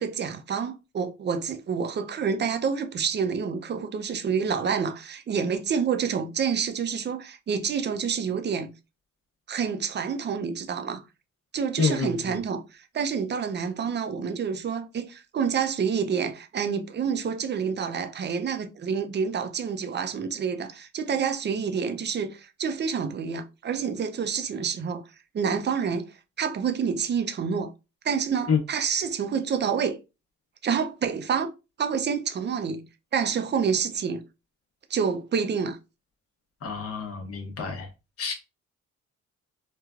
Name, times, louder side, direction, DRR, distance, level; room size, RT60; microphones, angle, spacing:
voice 1, 0.0-8.7 9.5-11.0 11.5-25.0 25.3-26.1 26.4-27.7 28.0-30.0 30.6-31.5 31.8-32.9 33.1-34.2 34.9-35.8, right 6 dB, 35° right, 0.5 m, -28 dB
voice 2, 11.8-12.1 28.5-28.6 36.6-37.9 38.2-38.3, left 5 dB, 50° left, 0.9 m, -27 dB
3.1 x 2.2 x 2.4 m
cardioid pair, 90°, 30 cm